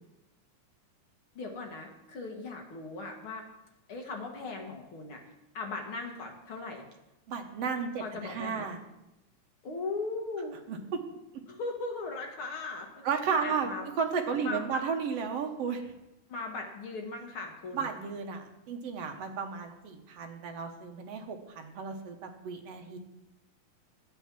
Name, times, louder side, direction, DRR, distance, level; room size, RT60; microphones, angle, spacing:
voice 1, 1.3-3.5 3.9-5.2 5.5-6.8 8.0-8.7 9.6-10.6 11.5-13.0 13.4-13.8 14.4-14.8 16.3-17.9, left 3 dB, 55° left, 2 dB, 1.7 m, -38 dB
voice 2, 7.3-8.8 10.7-11.0 13.0-13.7 14.0-15.9 17.7-23.0, right 6 dB, 65° right, 4 dB, 1.7 m, -33 dB
11.5 x 8.3 x 6.0 m, 0.94 s
omnidirectional pair, 3.8 m